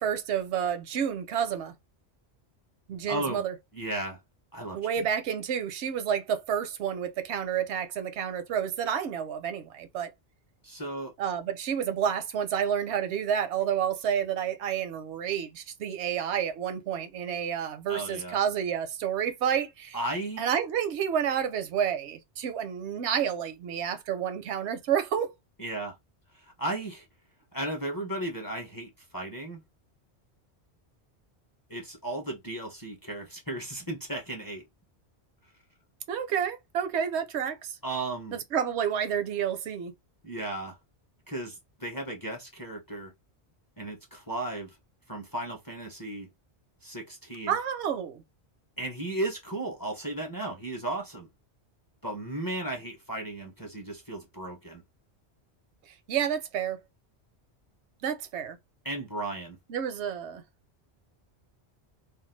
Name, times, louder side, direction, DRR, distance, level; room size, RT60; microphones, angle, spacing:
voice 1, 0.0-1.7 2.9-3.5 4.7-10.1 11.2-20.0 20.4-25.3 36.1-37.8 38.3-39.9 47.5-48.2 55.9-56.8 58.0-58.6 59.7-60.4, right 8 dB, 80° right, 0.9 m, -30 dB
voice 2, 3.1-3.4 3.7-4.2 4.5-5.1 10.6-11.1 17.9-18.4 19.9-20.4 25.6-26.0 26.3-27.1 27.5-29.6 31.7-34.6 37.8-38.4 40.2-40.8 41.3-43.1 43.8-44.8 45.1-46.3 46.8-47.5 48.8-51.3 52.0-54.8 58.8-59.6, right 1 dB, 25° left, 0.5 m, -35 dB
2.5 x 2.2 x 3.1 m
omnidirectional pair, 1.1 m